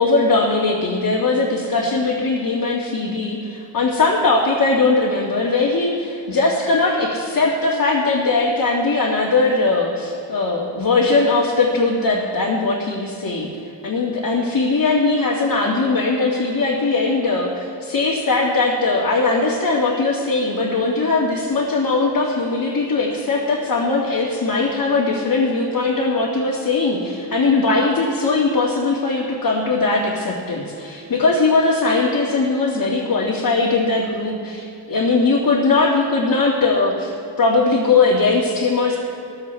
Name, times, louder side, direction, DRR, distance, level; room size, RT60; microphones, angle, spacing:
voice 1, 0.0-13.5 13.8-39.0, left 3 dB, 50° left, -3 dB, 2.2 m, -19 dB
17.0 x 14.0 x 3.4 m, 2.8 s
cardioid pair, 85°, 46 cm